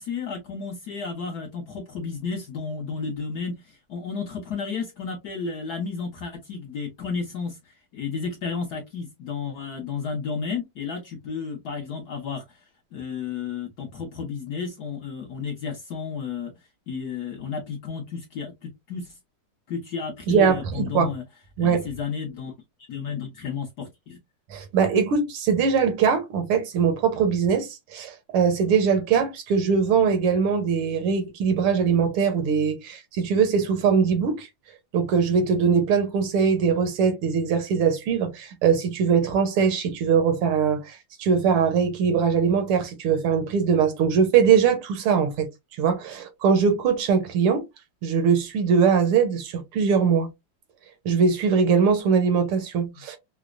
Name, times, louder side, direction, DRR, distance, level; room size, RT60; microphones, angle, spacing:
voice 1, 0.0-12.6 12.9-16.5 16.9-19.1 19.7-21.2 21.6-22.5 22.9-24.2 52.9-53.0, left 5 dB, 65° left, 1.0 m, -32 dB
voice 2, 20.3-21.1 21.6-21.8 24.5-34.5 34.9-45.5 45.8-47.6 48.0-50.3 51.0-53.2, right 6 dB, 80° right, 1.8 m, -21 dB
4.9 x 2.0 x 2.4 m
omnidirectional pair, 2.4 m